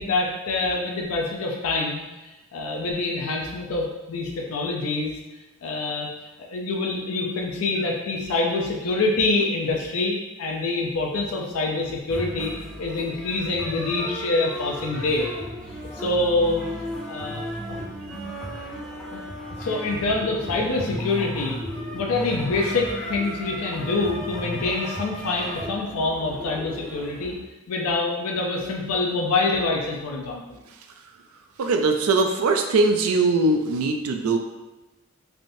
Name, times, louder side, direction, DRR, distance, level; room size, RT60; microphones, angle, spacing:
voice 1, 0.0-2.0 2.5-5.1 5.6-6.1 6.5-12.5 12.8-15.3 16.0-16.6 17.1-17.4 17.7-17.8 19.1-19.2 19.6-21.6 21.9-27.3 27.7-30.6, left 3 dB, 80° left, 0 dB, 0.4 m, -25 dB
sound 1, 12.1-27.4, equal, 5° left, 0.5 m, -35 dB
voice 2, 31.6-34.4, right 3 dB, 80° right, 4 dB, 0.4 m, -21 dB
3.4 x 2.5 x 2.6 m, 1.1 s
head